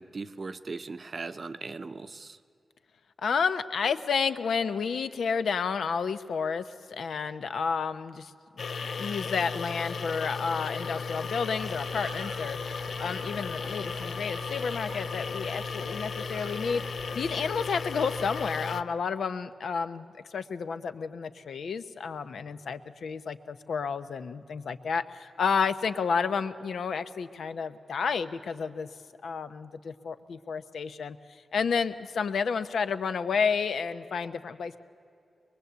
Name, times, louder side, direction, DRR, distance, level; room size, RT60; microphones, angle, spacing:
voice 1, 0.0-2.4, right 4 dB, 35° right, 11 dB, 0.6 m, -39 dB
voice 2, 3.2-8.3 9.0-12.6 13.0-28.9 29.2-34.8, left 5 dB, 90° left, 11 dB, 0.9 m, -31 dB
sound 1, 8.6-18.8, left 5 dB, 65° left, 0.5 m, -35 dB
sound 2, 11.6-18.5, right 5 dB, 70° right, 0.9 m, -49 dB
23.0 x 22.5 x 8.1 m, 2.6 s
wide cardioid pair, 170°, 0 cm